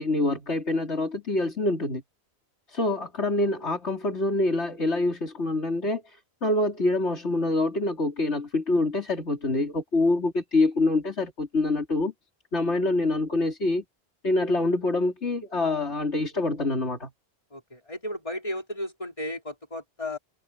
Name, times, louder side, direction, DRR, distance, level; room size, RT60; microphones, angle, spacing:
voice 1, 0.0-2.0 2.7-12.1 12.5-13.8 14.2-17.1, left 2 dB, 90° left, 3.7 m, -26 dB
voice 2, 17.5-20.2, left 1 dB, 30° left, 4.1 m, -34 dB
omnidirectional pair, 1.1 m